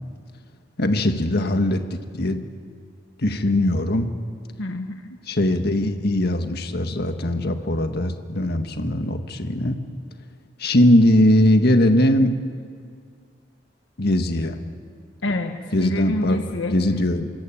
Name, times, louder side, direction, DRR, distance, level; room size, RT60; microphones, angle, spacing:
voice 1, 0.8-2.4 3.2-4.1 5.3-9.8 10.6-12.4 14.0-14.6 15.7-16.4 16.7-17.3, left 1 dB, 55° left, 6 dB, 1.7 m, -20 dB
voice 2, 4.6-5.2 15.2-16.8, left 1 dB, 70° left, 5 dB, 1.4 m, -27 dB
26.0 x 22.0 x 8.8 m, 2.2 s
head